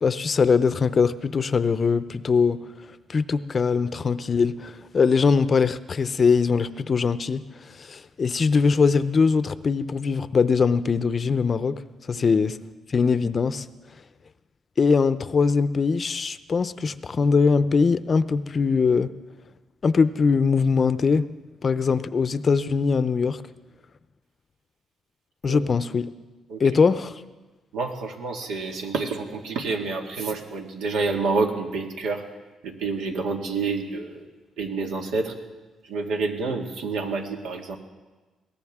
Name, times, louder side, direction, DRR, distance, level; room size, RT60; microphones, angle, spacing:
voice 1, 0.0-2.6 3.1-11.8 12.1-12.6 12.9-13.7 14.8-19.1 19.8-21.3 21.6-23.4 25.4-26.1 26.6-27.1, left 5 dB, 40° left, 14 dB, 0.6 m, -22 dB
voice 2, 27.7-32.2 32.6-34.3 34.6-35.3 35.8-37.8, right 4 dB, 85° right, 2 dB, 2.0 m, -28 dB
21.5 x 17.5 x 3.6 m, 1.2 s
cardioid pair, 90°, 0 cm